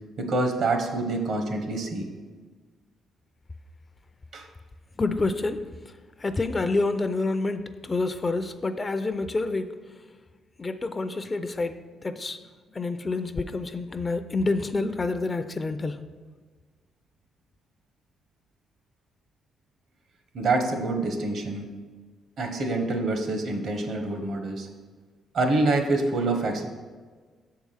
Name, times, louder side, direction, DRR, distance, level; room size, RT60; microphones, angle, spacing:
voice 1, 0.2-2.1 4.3-4.5 20.3-21.7 22.4-24.7 25.3-26.7, right 2 dB, 65° right, 5 dB, 1.1 m, -26 dB
voice 2, 5.0-5.7 6.2-9.7 10.6-12.4 12.7-16.0, left 3 dB, 30° left, 10 dB, 0.4 m, -28 dB
6.8 x 4.7 x 5.6 m, 1.5 s
cardioid pair, 90°, 0 cm